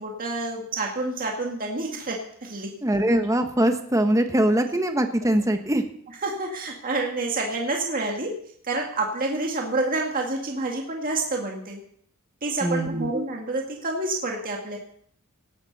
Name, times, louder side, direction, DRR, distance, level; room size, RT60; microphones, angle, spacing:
voice 1, 0.0-2.7 6.2-8.3 8.6-11.8 12.4-14.8, right 2 dB, 40° right, 0 dB, 2.0 m, -28 dB
voice 2, 2.8-5.8 12.6-13.1, right 1 dB, 15° right, 6 dB, 1.2 m, -22 dB
17.5 x 12.0 x 4.2 m, 0.62 s
head